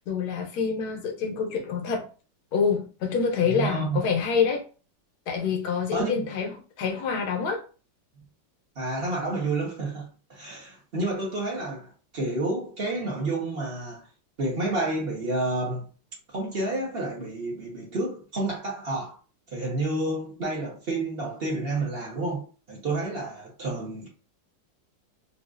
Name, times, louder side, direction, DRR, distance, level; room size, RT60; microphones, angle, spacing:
voice 1, 0.0-2.1 2.5-4.6 5.3-7.6, left 6 dB, 70° left, 1.1 m, -26 dB
voice 2, 3.5-4.0 5.9-6.2 8.8-14.0 14.4-15.9 16.3-19.2 19.5-24.1, right 2 dB, 45° right, 0.9 m, -30 dB
3.8 x 2.4 x 2.4 m
omnidirectional pair, 2.0 m